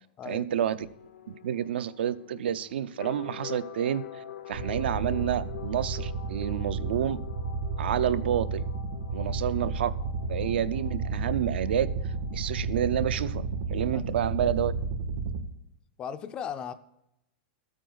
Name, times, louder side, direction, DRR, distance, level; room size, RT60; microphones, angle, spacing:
voice 1, 0.3-0.9 1.3-7.2 7.8-8.7 9.1-10.0 10.3-11.9 12.3-14.7, right 10 dB, 75° right, 13 dB, 0.6 m, -29 dB
sound 1, 0.8-14.3, left 10 dB, 90° left, 1.1 m, -46 dB
sound 2, 4.5-15.4, right 3 dB, 90° right, 1.7 m, -32 dB
voice 2, 16.0-16.7, left 8 dB, 15° left, 11 dB, 0.4 m, -37 dB
13.0 x 8.9 x 3.9 m, 0.82 s
supercardioid pair, 175°, 6 cm